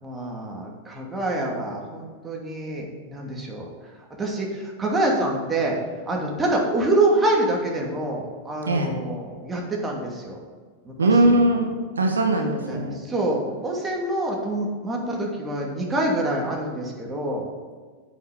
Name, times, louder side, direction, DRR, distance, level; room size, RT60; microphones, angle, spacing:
voice 1, 0.0-3.7 4.2-5.8 6.1-10.4 10.9-11.4 12.5-17.5, right 1 dB, 15° right, -2 dB, 2.6 m, -26 dB
voice 2, 11.0-13.0, right 1 dB, 85° right, 3 dB, 1.6 m, -20 dB
9.2 x 6.1 x 6.9 m, 1.5 s
hypercardioid pair, 95°, 0 cm